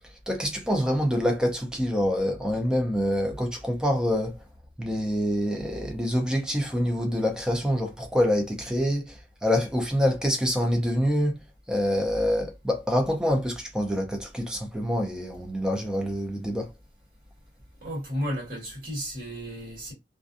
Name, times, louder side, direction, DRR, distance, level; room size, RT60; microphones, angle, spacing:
voice 1, 0.3-4.4 4.8-11.4 11.7-16.7, equal, 5° right, 0.5 m, -26 dB
voice 2, 17.8-19.9, equal, 50° right, 1.5 m, -33 dB
2.5 x 2.2 x 2.5 m
head